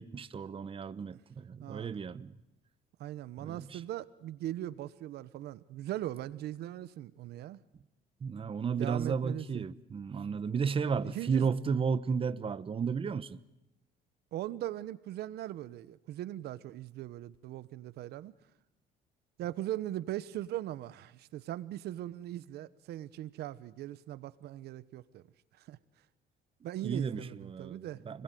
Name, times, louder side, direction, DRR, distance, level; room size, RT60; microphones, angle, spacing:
voice 1, 0.0-2.3 3.4-3.8 8.2-13.4 26.8-28.2, right 6 dB, 30° right, 1.1 m, -33 dB
voice 2, 1.6-1.9 3.0-7.6 8.8-9.7 11.1-11.5 14.3-18.3 19.4-25.3 25.6-25.8 26.6-28.0, right 13 dB, 75° right, 1.1 m, -40 dB
29.0 x 21.5 x 9.3 m
cardioid pair, 110°, 17 cm